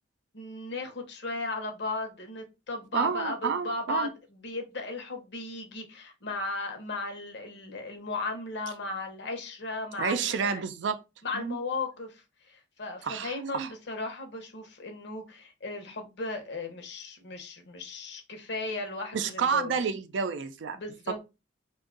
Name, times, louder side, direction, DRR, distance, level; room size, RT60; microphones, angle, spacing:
voice 1, 0.3-10.6 11.2-19.8 20.7-21.2, left 3 dB, 65° left, 0.8 m, -36 dB
voice 2, 2.9-4.1 10.0-11.0 11.3-11.6 13.0-13.7 19.1-20.8 21.1-21.2, right 6 dB, 70° right, 0.4 m, -29 dB
2.6 x 2.3 x 3.7 m
head